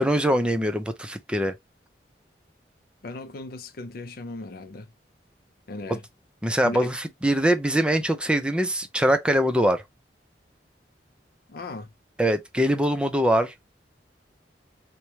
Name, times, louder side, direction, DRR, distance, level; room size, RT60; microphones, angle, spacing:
voice 1, 0.0-1.5 6.4-9.8 12.2-13.5, equal, 5° right, 0.5 m, -23 dB
voice 2, 3.0-4.9 5.7-6.0 6.6-7.0 11.5-11.9, left 2 dB, 60° left, 0.5 m, -37 dB
4.7 x 2.2 x 2.8 m
head